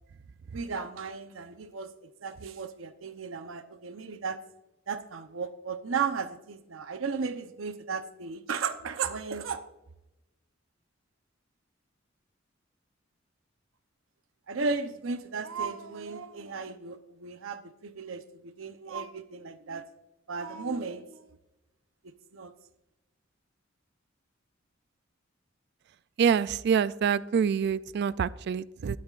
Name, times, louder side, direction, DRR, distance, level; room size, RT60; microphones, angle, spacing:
voice 1, 0.5-4.4 4.9-9.6 14.5-19.8 20.3-21.2 22.0-22.5, right 5 dB, 85° right, 9 dB, 0.8 m, -35 dB
voice 2, 26.2-29.0, right 7 dB, 55° right, 18 dB, 0.3 m, -26 dB
21.0 x 8.7 x 2.5 m, 0.94 s
head